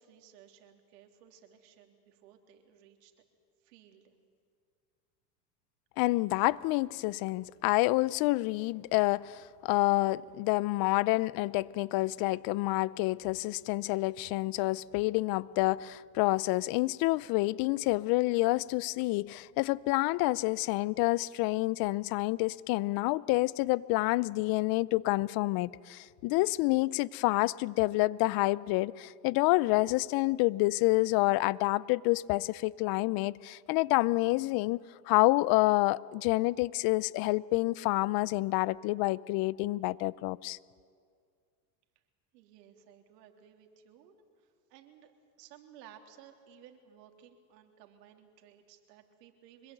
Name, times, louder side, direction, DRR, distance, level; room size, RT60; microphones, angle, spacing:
voice 1, 0.0-3.1 3.6-4.1 42.3-45.1 45.4-49.7, right 9 dB, 70° right, 3.5 m, -57 dB
voice 2, 6.0-40.6, left 20 dB, 45° left, 0.6 m, -28 dB
25.0 x 21.5 x 9.2 m
supercardioid pair, 120°, 50 cm